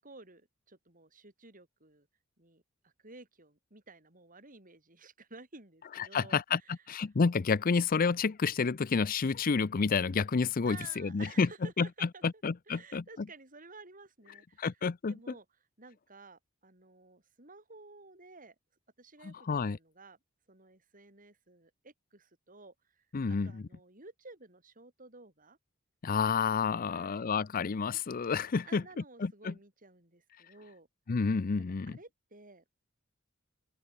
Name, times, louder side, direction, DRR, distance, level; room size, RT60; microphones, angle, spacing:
voice 1, 0.0-2.1 2.4-6.7 10.6-14.7 15.1-15.5 15.8-18.5 19.0-20.2 20.5-25.6 26.9-27.3 28.7-30.9 31.9-32.6, right 3 dB, 40° right, 7.7 m, -53 dB
voice 2, 6.0-11.5 11.8-13.0 14.6-15.1 19.2-19.8 23.1-23.7 26.0-28.8 29.2-29.5 31.1-32.0, left 5 dB, 45° left, 0.5 m, -30 dB
open air
head